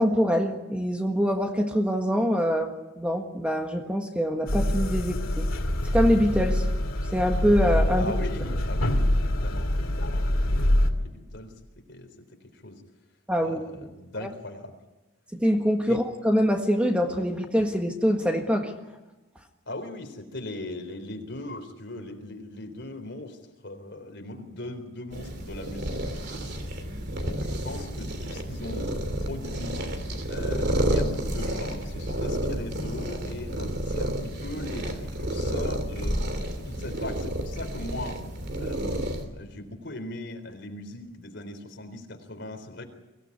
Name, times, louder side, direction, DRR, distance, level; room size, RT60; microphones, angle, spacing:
voice 1, 0.0-5.5 5.9-6.7 7.1-8.1 13.3-13.6 14.2-14.3 15.3-18.7, equal, 5° right, 3 dB, 1.5 m, -24 dB
sound 1, 4.5-10.9, left 1 dB, 75° left, 2.5 m, -25 dB
voice 2, 8.0-12.8 13.4-14.7 15.9-16.0 19.7-26.6 27.2-29.9 30.3-38.3 38.6-42.8, left 1 dB, 55° left, 5 dB, 3.9 m, -39 dB
sound 2, 25.1-39.2, right 1 dB, 50° right, 3.2 m, -30 dB
24.0 x 17.0 x 9.7 m, 1.1 s
head